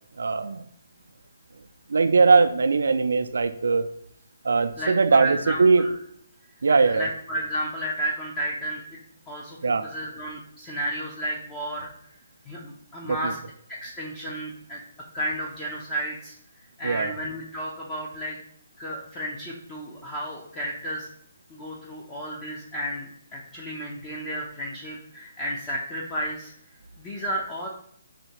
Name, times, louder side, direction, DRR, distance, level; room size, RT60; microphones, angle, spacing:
voice 1, 0.2-0.6 1.9-3.9 4.4-5.9 6.6-7.1 9.6-9.9 13.0-13.3 16.8-17.1, right 4 dB, 75° right, 9 dB, 0.4 m, -20 dB
voice 2, 4.8-5.9 6.7-9.0 9.3-11.9 12.5-13.4 13.7-14.8 15.1-16.3 16.8-18.4 18.8-21.1 21.5-26.5 27.0-27.7, equal, 20° left, -3 dB, 0.6 m, -32 dB
4.1 x 2.8 x 4.6 m, 0.67 s
hypercardioid pair, 155°, 0 cm